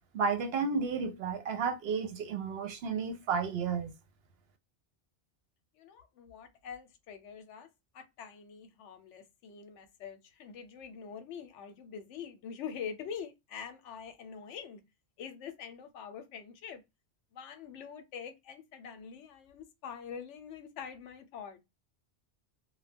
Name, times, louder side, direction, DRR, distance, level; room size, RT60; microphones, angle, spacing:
voice 1, 0.1-3.9, right 5 dB, 65° right, 0.7 m, -32 dB
voice 2, 5.7-7.7 7.9-14.8 15.2-16.8 17.3-21.6, left 7 dB, 85° left, 0.9 m, -45 dB
2.2 x 2.0 x 3.3 m
omnidirectional pair, 1.2 m